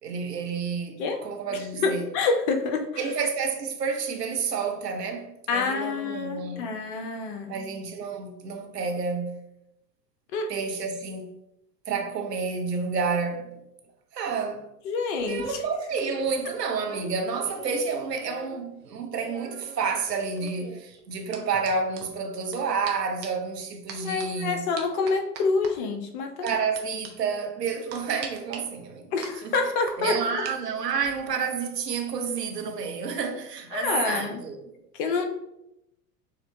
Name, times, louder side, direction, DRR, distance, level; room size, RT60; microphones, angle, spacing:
voice 1, 0.0-2.0 3.0-6.7 7.5-9.4 10.5-11.3 11.9-13.5 14.1-14.6 15.2-24.7 26.4-29.6 30.0-34.6, right 5 dB, 75° right, 0.9 m, -30 dB
voice 2, 1.5-2.9 5.5-7.5 10.3-10.5 14.8-15.6 24.0-26.5 29.1-30.4 33.7-34.4 34.9-35.2, left 4 dB, 35° left, 0.5 m, -27 dB
sound 1, 15.2-18.6 18.9-22.6 22.9-23.0 23.2-23.5 23.9-24.3 24.8-25.7 26.5-26.8 27.0-27.1 27.9-28.6 29.2-30.5 30.9-31.2, right 6 dB, 20° right, 0.5 m, -42 dB
6.5 x 2.4 x 3.1 m
figure-of-eight pair, 85°, 49 cm